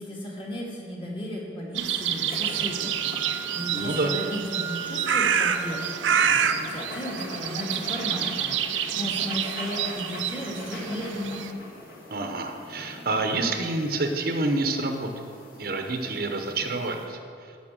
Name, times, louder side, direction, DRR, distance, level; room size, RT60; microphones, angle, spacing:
voice 1, 0.0-11.4, equal, 30° left, -3 dB, 2.0 m, -35 dB
sound 1, 1.8-11.5, right 8 dB, 80° right, 0.5 m, -28 dB
sound 2, 2.0-17.1, left 1 dB, 50° left, 1.7 m, -42 dB
Wind instrument woodwind instrument, 2.5-6.6, right 5 dB, 10° right, 0.5 m, -38 dB
voice 2, 3.7-4.1 12.1-15.3 15.6-17.2, right 2 dB, 50° right, 4 dB, 0.8 m, -28 dB
11.0 x 5.8 x 7.3 m, 2.5 s
head